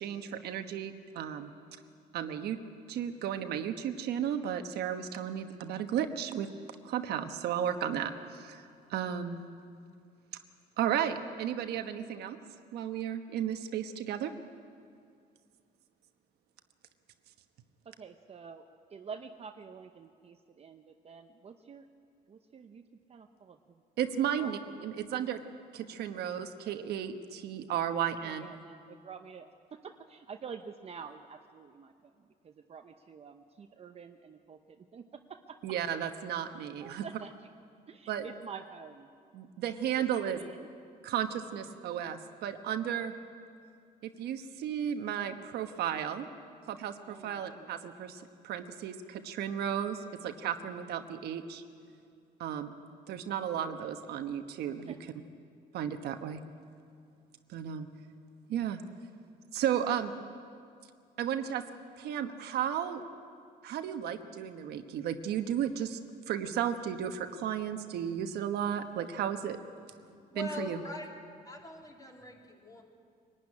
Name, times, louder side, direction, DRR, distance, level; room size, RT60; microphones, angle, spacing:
voice 1, 0.0-1.5 2.1-2.6 2.9-6.5 6.8-8.6 8.9-9.4 10.8-12.4 12.7-14.3 24.0-25.4 25.7-28.5 35.6-37.0 38.1-38.3 39.3-40.4 41.0-43.1 44.0-46.3 46.7-51.6 52.4-52.7 53.1-54.9 55.7-56.4 57.5-57.9 58.5-58.8 59.5-60.1 61.2-61.6 62.0-63.0 63.6-66.0 66.3-69.6 70.3-70.8, right 9 dB, 75° right, 7 dB, 1.2 m, -34 dB
voice 2, 17.8-21.9 22.3-23.8 24.4-24.9 25.1-25.4 28.2-35.6 36.8-37.5 37.9-39.1 39.9-40.7 47.1-47.8 54.9-55.0, right 6 dB, 35° right, 6 dB, 0.9 m, -48 dB
voice 3, 70.0-71.1 71.4-72.8, left 2 dB, 20° left, 0 dB, 3.3 m, -43 dB
23.5 x 12.0 x 9.8 m, 2.3 s
cardioid pair, 110°, 17 cm